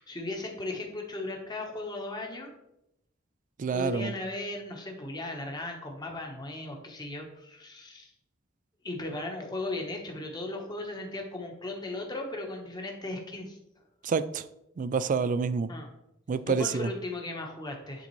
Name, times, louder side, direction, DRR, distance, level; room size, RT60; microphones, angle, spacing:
voice 1, 0.0-2.5 3.7-8.1 8.8-13.6 15.7-15.9 16.5-18.1, left 2 dB, 20° left, 2 dB, 1.1 m, -37 dB
voice 2, 3.6-4.1 14.0-14.4 14.8-15.7 16.3-16.9, right 5 dB, 40° right, 14 dB, 0.3 m, -28 dB
10.5 x 3.8 x 3.1 m, 0.82 s
head